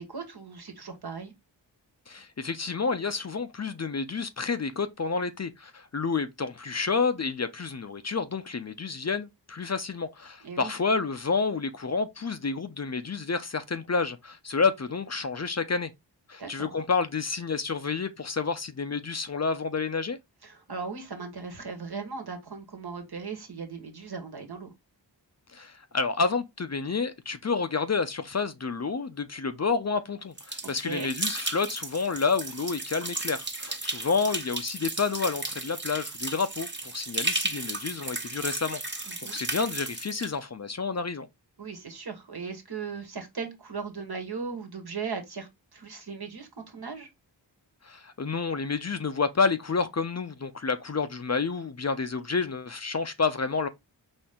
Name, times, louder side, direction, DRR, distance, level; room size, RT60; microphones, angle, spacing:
voice 1, 0.0-1.3 10.4-10.7 16.4-16.7 20.4-24.7 30.8-31.1 39.1-39.4 41.6-47.1, right 5 dB, 60° right, 1.4 m, -38 dB
voice 2, 2.1-15.9 16.3-20.2 25.5-41.3 47.8-53.7, left 4 dB, 40° left, 0.6 m, -29 dB
sound 1, 30.4-40.3, right 2 dB, 25° right, 1.1 m, -34 dB
4.4 x 2.9 x 3.6 m
cardioid pair, 40°, 44 cm